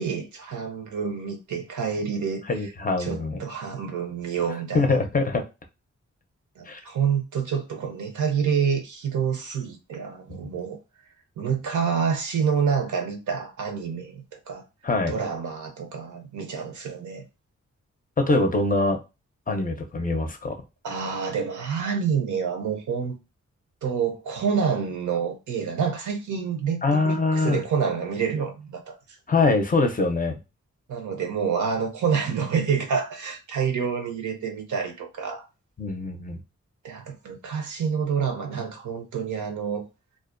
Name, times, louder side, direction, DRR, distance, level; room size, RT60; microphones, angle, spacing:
voice 1, 0.0-2.7 3.0-5.0 6.6-10.8 11.4-14.6 15.1-17.2 20.8-23.2 23.8-29.0 30.9-35.4 36.8-39.9, right 6 dB, 80° right, 0.6 m, -28 dB
voice 2, 2.5-3.4 4.7-5.4 6.7-6.8 10.3-10.5 14.8-15.1 18.2-19.0 19.5-20.6 26.8-27.6 29.3-30.4 35.8-36.4, left 3 dB, 30° left, 0.5 m, -23 dB
2.3 x 2.1 x 2.4 m
cardioid pair, 55°, 29 cm